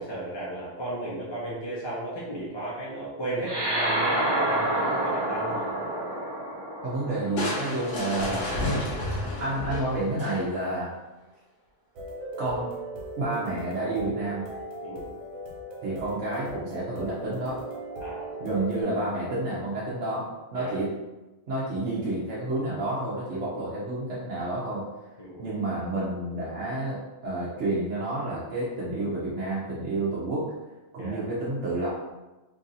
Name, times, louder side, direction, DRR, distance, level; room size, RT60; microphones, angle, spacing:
voice 1, 0.0-5.7 8.2-8.5 14.8-15.1 18.0-18.3 20.5-20.7 25.2-25.5 31.0-31.2, right 1 dB, 30° left, -7 dB, 0.5 m, -35 dB
sound 1, 3.4-8.2, right 1 dB, 25° right, 0.5 m, -28 dB
voice 2, 6.8-8.4 9.4-10.9 12.4-12.7 13.2-14.4 15.8-17.6 18.4-20.9 21.5-24.9 25.4-30.5 30.9-31.9, right 2 dB, 60° right, -7 dB, 1.0 m, -30 dB
Crushing, 7.4-10.7, left 1 dB, 65° left, 1.2 m, -31 dB
sound 2, 12.0-18.8, right 1 dB, 85° right, 1.1 m, -38 dB
3.1 x 2.6 x 3.9 m, 1.1 s
omnidirectional pair, 1.4 m